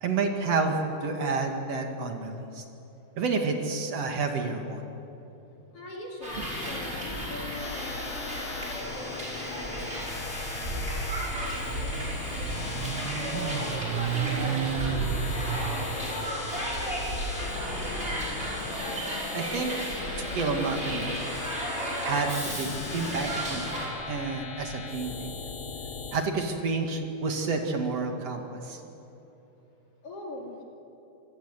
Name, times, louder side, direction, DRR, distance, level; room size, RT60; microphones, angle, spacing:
voice 1, 0.0-2.6 3.2-4.8 19.3-19.7 20.2-21.3 22.0-23.7 24.1-25.3 26.1-28.8, right 4 dB, 50° right, 3 dB, 2.9 m, -29 dB
voice 2, 5.7-11.0 11.6-12.7 13.3-18.0 30.0-30.6, left 2 dB, 45° left, -1 dB, 3.5 m, -42 dB
Hiss, 6.2-23.9, right 1 dB, 15° right, 5.9 m, -34 dB
sound 1, 6.3-26.2, left 6 dB, 65° left, 1.3 m, -39 dB
Motorcycle, 10.9-19.0, right 11 dB, 75° right, 2.0 m, -34 dB
26.5 x 20.0 x 8.2 m, 2.9 s
omnidirectional pair, 4.1 m